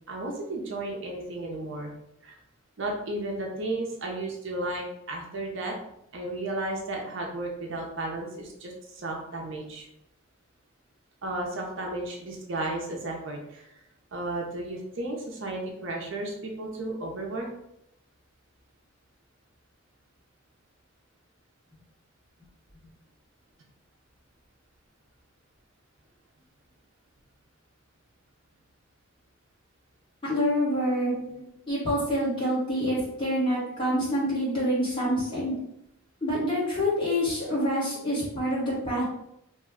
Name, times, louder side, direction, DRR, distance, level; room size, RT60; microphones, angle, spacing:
voice 1, 0.1-1.9 2.2-2.4 2.8-5.7 6.1-9.9 11.2-13.7 14.1-17.5 31.0-31.4 35.0-35.1, right 2 dB, 60° right, 0 dB, 0.6 m, -34 dB
voice 2, 30.2-31.1 31.7-35.5 36.2-39.0, equal, 25° left, -7 dB, 1.2 m, -26 dB
3.0 x 2.2 x 3.5 m, 0.80 s
head